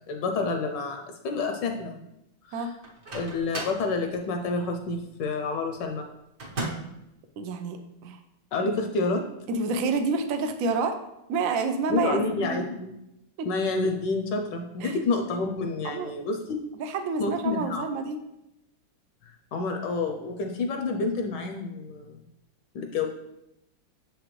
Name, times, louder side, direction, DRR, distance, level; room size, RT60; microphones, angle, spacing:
voice 1, 0.1-2.1 2.4-2.7 3.1-6.1 8.5-9.2 11.9-13.0 13.4-16.4 17.2-17.9 19.2-22.2 22.7-23.1, left 3 dB, 75° left, 4 dB, 1.2 m, -29 dB
Microwave oven, 2.8-3.9 6.4-7.0, right 2 dB, 60° right, 1.8 m, -35 dB
voice 2, 7.4-8.2 9.5-11.0 11.3-12.6 13.4-13.5 14.8-15.0 15.8-16.1 16.8-18.2, right 4 dB, 85° right, 7 dB, 0.7 m, -28 dB
7.1 x 5.0 x 3.1 m, 0.85 s
omnidirectional pair, 2.2 m